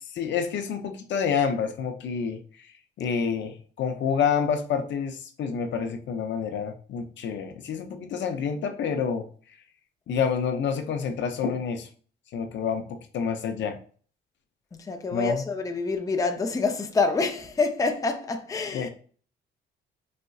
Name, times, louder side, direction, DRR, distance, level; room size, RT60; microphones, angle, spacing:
voice 1, 0.1-2.4 3.0-9.3 10.1-11.9 12.3-13.8 15.1-15.4 18.7-18.9, left 6 dB, 65° left, 0.5 m, -28 dB
voice 2, 14.7-18.9, left 4 dB, 15° left, 0.4 m, -27 dB
4.1 x 2.6 x 2.3 m
cardioid pair, 90°, 20 cm